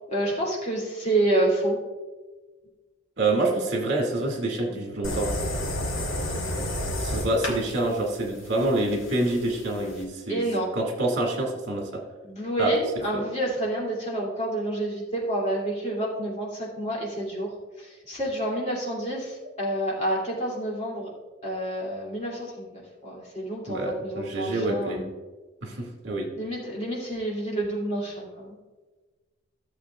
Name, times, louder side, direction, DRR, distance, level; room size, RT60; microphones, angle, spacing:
voice 1, 0.1-1.8 10.3-10.7 12.2-17.5 17.8-21.1 21.4-25.1 26.4-28.5, right 1 dB, 35° left, -3 dB, 2.8 m, -28 dB
voice 2, 3.2-5.3 7.0-10.4 10.7-12.0 12.6-12.7 13.1-13.2 23.7-25.1 25.6-26.3, right 2 dB, 55° right, 0 dB, 2.2 m, -27 dB
sound 1, 5.0-10.0, left 1 dB, 80° left, 1.6 m, -31 dB
15.0 x 7.2 x 2.4 m, 1.3 s
head